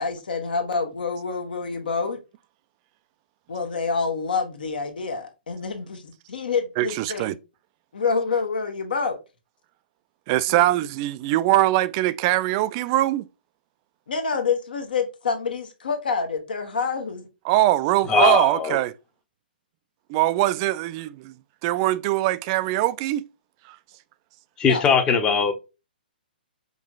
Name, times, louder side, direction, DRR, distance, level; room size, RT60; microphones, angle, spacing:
voice 1, 0.0-2.2 3.5-7.4 7.9-9.2 10.5-10.7 14.1-17.3 24.7-24.8, left 5 dB, 65° left, 1.2 m, -27 dB
voice 2, 6.8-7.3 10.3-13.3 17.5-18.9 20.1-21.3 21.6-23.2 23.7-23.8, right 15 dB, 30° right, 0.3 m, -22 dB
voice 3, 18.1-18.8 24.6-25.5, left 5 dB, 15° left, 0.7 m, -20 dB
5.3 x 3.1 x 2.4 m
figure-of-eight pair, 125°, 5 cm